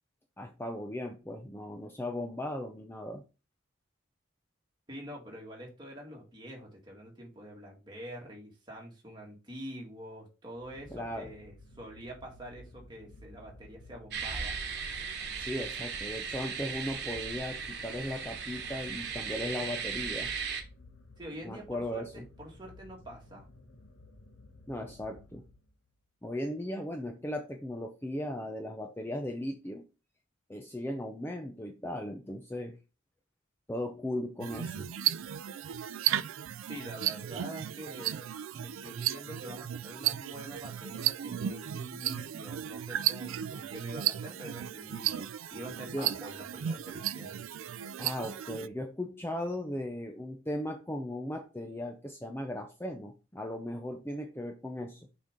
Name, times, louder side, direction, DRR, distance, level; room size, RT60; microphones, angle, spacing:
voice 1, 0.4-3.2 10.9-11.3 15.4-20.3 21.4-22.3 24.7-25.5 26.2-29.9 30.5-32.8 33.7-34.9 45.8-46.2 48.0-55.1, left 1 dB, 10° left, 4 dB, 0.5 m, -37 dB
voice 2, 4.9-14.6 21.2-23.5 36.7-47.4, equal, 20° right, -1 dB, 2.1 m, -46 dB
sound 1, 10.6-25.9, left 1 dB, 75° left, 1.2 m, -54 dB
sound 2, 14.1-20.6, right 6 dB, 55° right, 1.4 m, -37 dB
sound 3, 34.4-48.7, right 11 dB, 85° right, 0.3 m, -34 dB
6.4 x 5.1 x 3.7 m, 0.31 s
head